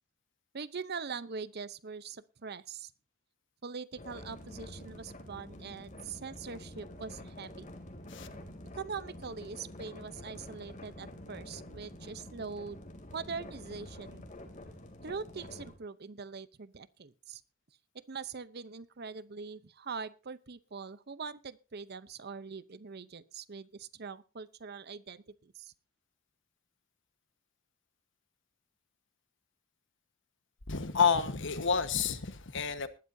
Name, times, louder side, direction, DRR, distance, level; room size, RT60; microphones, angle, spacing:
voice 1, 0.5-2.9 3.6-7.7 8.7-12.8 13.1-14.2 15.0-17.4 17.9-25.7, right 5 dB, 50° right, 0.7 m, -42 dB
sound 1, 4.0-15.8, left 1 dB, 35° left, 2.8 m, -48 dB
voice 2, 30.7-32.9, left 6 dB, 65° left, 1.4 m, -29 dB
19.5 x 12.5 x 2.7 m
head